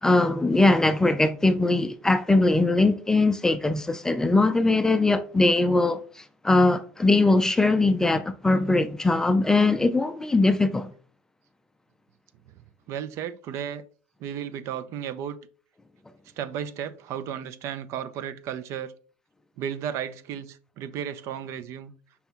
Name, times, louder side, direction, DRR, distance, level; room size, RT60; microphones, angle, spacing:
voice 1, 0.0-10.9, left 2 dB, 10° left, 0.4 m, -21 dB
voice 2, 12.9-13.8 14.2-15.4 16.4-18.9 19.6-21.9, right 9 dB, 55° right, 0.5 m, -34 dB
5.4 x 2.2 x 4.3 m
supercardioid pair, 110°, 6 cm